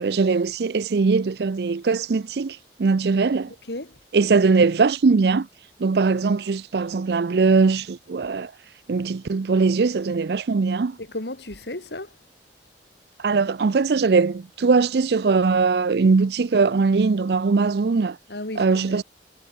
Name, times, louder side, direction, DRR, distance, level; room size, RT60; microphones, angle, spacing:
voice 1, 0.0-3.5 4.1-5.5 5.8-8.5 8.9-11.0 13.2-18.2 18.6-19.0, right 4 dB, 65° right, 0.5 m, -20 dB
voice 2, 3.5-4.0 11.0-12.2 18.3-19.0, left 1 dB, 70° left, 3.1 m, -34 dB
head